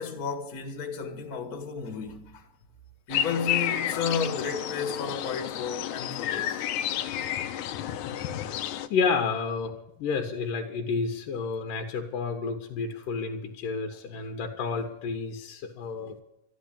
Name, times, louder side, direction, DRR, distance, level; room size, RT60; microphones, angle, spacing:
voice 1, 0.0-2.5 3.1-6.6, left 5 dB, 40° left, 1.4 m, -32 dB
sound 1, 3.1-8.9, left 11 dB, 75° left, 2.2 m, -31 dB
voice 2, 8.9-9.7 10.0-16.2, left 5 dB, 90° left, 3.0 m, -30 dB
13.5 x 11.5 x 8.8 m
omnidirectional pair, 3.7 m